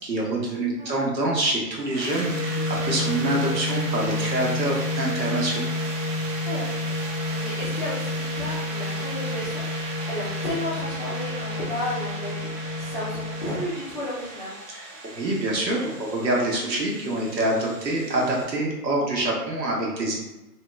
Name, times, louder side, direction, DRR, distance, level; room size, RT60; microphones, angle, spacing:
voice 1, 0.0-5.7 14.7-14.8 15.1-20.1, right 1 dB, 85° right, -3 dB, 1.1 m, -26 dB
sound 1, 1.8-18.4, right 2 dB, 50° right, 0.7 m, -37 dB
sound 2, 2.3-13.6, left 2 dB, 15° right, 0.8 m, -30 dB
voice 2, 6.4-7.0 7.3-14.5, left 1 dB, 30° left, -10 dB, 0.5 m, -33 dB
2.8 x 2.7 x 2.2 m, 1.0 s
hypercardioid pair, 145°, 49 cm